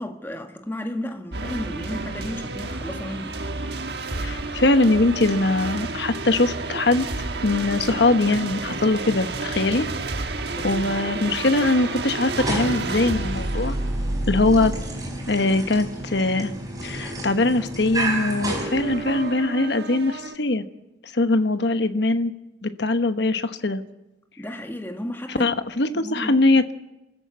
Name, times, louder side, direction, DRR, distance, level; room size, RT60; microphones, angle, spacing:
voice 1, 0.0-3.4 10.5-10.7 24.4-25.5 25.9-26.4, left 1 dB, 10° left, 1.7 m, -33 dB
sound 1, 1.3-16.3 18.1-20.4, right 2 dB, 65° right, 1.4 m, -30 dB
voice 2, 4.2-7.1 7.4-9.9 10.6-13.8 14.3-14.7 15.3-16.5 16.8-20.6 21.1-22.3 22.6-23.8 25.4-26.7, left 2 dB, 70° left, 1.1 m, -21 dB
sound 2, 12.2-19.4, right 1 dB, 20° right, 4.6 m, -31 dB
27.0 x 14.0 x 8.4 m
head